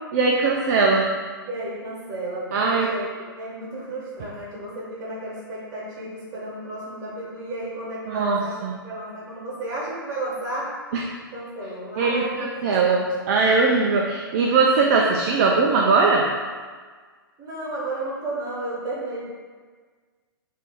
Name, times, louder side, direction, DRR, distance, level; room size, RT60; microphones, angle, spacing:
voice 1, 0.1-1.1 2.5-2.9 8.1-8.7 10.9-11.0 12.0-16.2, right 4 dB, 45° right, -1 dB, 0.4 m, -20 dB
voice 2, 1.4-3.1 3.4-10.7 11.3-12.5 12.8-13.1 17.4-19.2, right 1 dB, 30° right, -6 dB, 1.3 m, -33 dB
2.7 x 2.6 x 3.6 m, 1.5 s
figure-of-eight pair, 115°, 12 cm